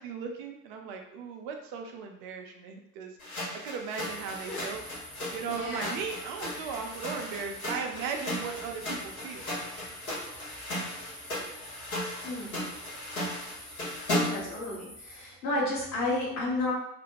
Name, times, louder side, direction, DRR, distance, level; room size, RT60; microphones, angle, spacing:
voice 1, 0.0-4.8 5.3-9.5, right 6 dB, 35° right, 3 dB, 0.4 m, -37 dB
sound 1, 3.2-14.5, left 1 dB, 65° left, 1.2 m, -36 dB
sound 2, 4.0-15.3, left 1 dB, 10° left, 0.7 m, -48 dB
voice 2, 5.5-6.0 6.6-6.7 12.2-12.6 14.2-16.7, left 2 dB, 35° left, -6 dB, 1.1 m, -32 dB
2.5 x 2.1 x 2.9 m, 0.86 s
figure-of-eight pair, 75°, 45 cm